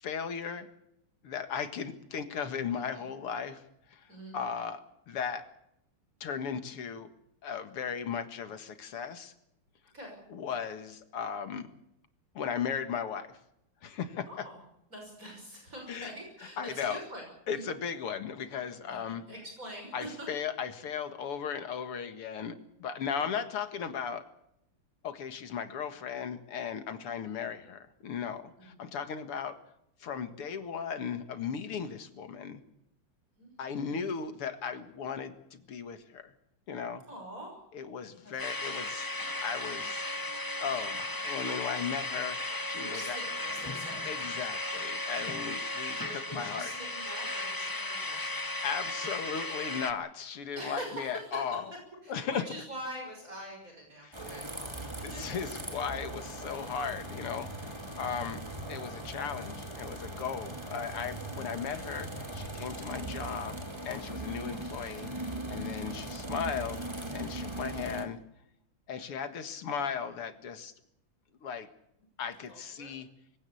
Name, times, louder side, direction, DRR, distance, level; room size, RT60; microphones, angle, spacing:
voice 1, 0.0-0.7 1.2-3.6 3.9-4.0 4.3-5.5 6.2-7.1 7.4-9.3 10.3-11.7 12.3-13.4 13.8-14.3 15.9-16.1 16.6-17.0 17.5-19.2 19.9-22.5 22.8-24.2 25.0-29.6 30.0-32.6 33.6-36.3 36.7-37.0 37.7-39.1 39.4-40.0 40.6-43.2 44.0-46.7 48.6-51.6 52.1-52.4 54.0-54.3 55.0-58.4 58.7-66.8 67.1-68.2 68.9-70.7 71.4-71.7 72.2-73.1, left 7 dB, 90° left, 9 dB, 2.7 m, -36 dB
voice 2, 14.3-14.6 14.9-17.6 18.9-20.3 28.6-28.8 33.4-33.5 33.8-34.2 37.1-37.6 38.2-38.4 42.8-44.0 45.4-45.5 46.0-48.5 48.9-49.0 50.5-51.4 52.0-55.4 58.0-58.3 72.5-72.9, right 1 dB, 35° right, 1 dB, 6.4 m, -45 dB
sound 1, 38.4-49.9, left 2 dB, 20° left, 0.6 m, -35 dB
sound 2, 54.1-68.0, right 1 dB, 10° right, 2.5 m, -40 dB
23.5 x 17.0 x 8.5 m, 0.78 s
omnidirectional pair, 2.4 m